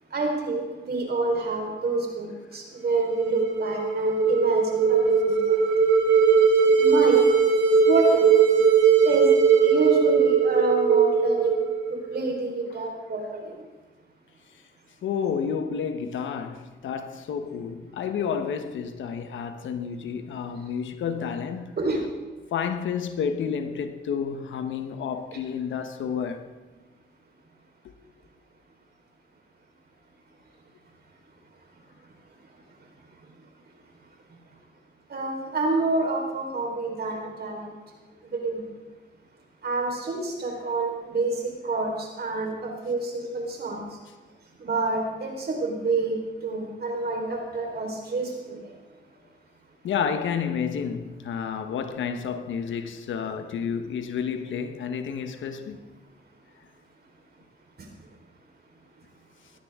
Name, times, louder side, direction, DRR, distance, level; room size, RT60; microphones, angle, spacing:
voice 1, 0.1-5.4 6.8-7.2 7.9-8.2 9.0-9.3 9.6-11.6 12.1-13.5 21.8-22.0 35.1-37.7 38.3-38.6 39.6-41.4 41.6-43.8 44.6-46.2 46.4-48.6, right 3 dB, 55° right, 4.2 m, -27 dB
sound 1, 3.0-12.2, right 6 dB, 75° right, 2.4 m, -20 dB
voice 2, 15.0-21.7 22.5-26.4 49.8-55.8, left 7 dB, 90° left, 1.1 m, -30 dB
17.5 x 13.5 x 3.7 m
cardioid pair, 70°, 19 cm